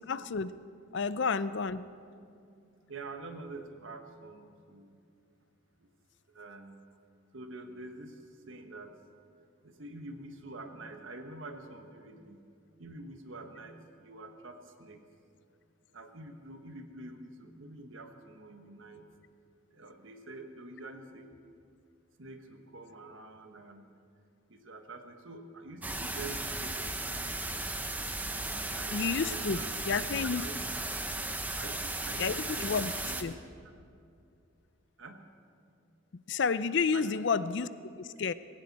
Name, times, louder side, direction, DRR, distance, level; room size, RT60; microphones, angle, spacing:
voice 1, 0.1-0.6 0.9-1.8 28.9-29.6 29.9-30.4 32.2-32.3 32.6-32.9 33.2-33.3 36.3-38.3, left 5 dB, 55° left, 15 dB, 0.4 m, -30 dB
voice 2, 2.9-5.0 5.8-5.9 6.3-6.9 7.3-8.9 9.6-12.5 12.8-15.1 15.9-19.2 19.7-21.3 22.2-24.0 24.5-27.8 28.4-29.8 30.1-30.7 31.2-31.3 31.5-33.3 35.0-35.3 36.9-37.1, right 2 dB, 65° right, 5 dB, 1.4 m, -47 dB
sound 1, 25.8-33.2, right 2 dB, 10° right, 0.6 m, -36 dB
20.0 x 17.0 x 4.2 m, 2.4 s
head